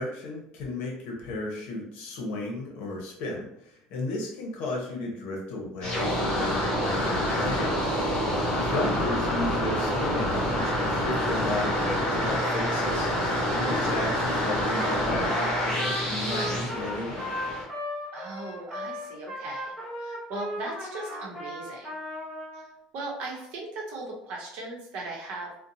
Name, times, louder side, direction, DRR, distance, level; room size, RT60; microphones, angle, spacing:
voice 1, 0.0-8.2 8.5-13.1 13.5-17.3, left 2 dB, 65° left, 0 dB, 0.8 m, -34 dB
sound 1, 5.8-17.6, equal, 30° left, 1.0 m, -27 dB
Trumpet, 14.8-15.0 15.3-22.7, equal, ahead, 0.7 m, -36 dB
voice 2, 18.1-21.9 22.5-22.7 22.9-25.6, right 2 dB, 60° right, -2 dB, 0.8 m, -38 dB
2.7 x 2.1 x 2.6 m, 0.76 s
cardioid pair, 170°, 3 cm